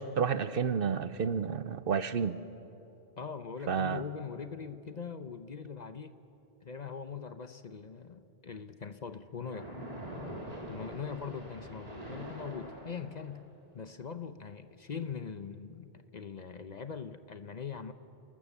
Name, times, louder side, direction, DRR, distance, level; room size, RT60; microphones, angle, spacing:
voice 1, 0.0-2.4 3.7-4.0, right 6 dB, 60° right, 13 dB, 0.8 m, -30 dB
voice 2, 3.2-6.2 6.6-9.7 10.7-13.4 13.7-17.9, left 6 dB, 45° left, 10 dB, 0.8 m, -41 dB
Splash splatter, 9.4-13.4, equal, 35° right, 3.7 m, -44 dB
30.0 x 19.0 x 7.2 m, 2.9 s
omnidirectional pair, 1.2 m